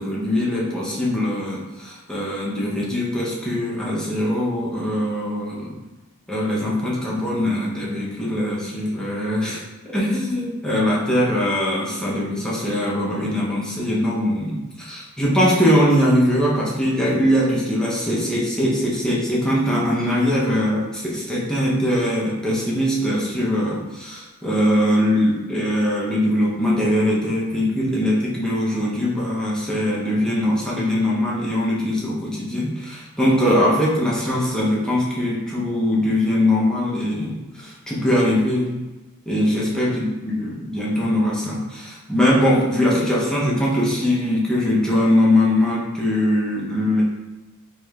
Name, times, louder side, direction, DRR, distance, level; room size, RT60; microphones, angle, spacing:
voice 1, 0.0-5.7 6.3-9.6 9.9-38.8 39.3-47.0, left 1 dB, 5° left, -6 dB, 0.7 m, -21 dB
4.8 x 3.1 x 2.4 m, 1.2 s
head